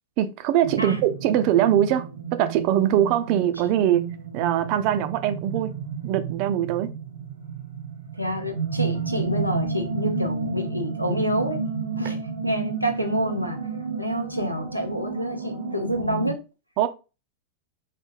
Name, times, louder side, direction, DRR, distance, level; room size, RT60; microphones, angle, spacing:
voice 1, 0.2-4.0 4.3-5.7 6.0-6.9 16.8-16.9, right 11 dB, 45° right, 0.3 m, -22 dB
sound 1, 0.6-16.3, right 5 dB, 80° right, 0.6 m, -31 dB
voice 2, 8.2-11.6 12.0-13.6 14.0-16.4, equal, 90° left, 0.6 m, -28 dB
3.2 x 2.1 x 3.2 m
figure-of-eight pair, 90°, 0 cm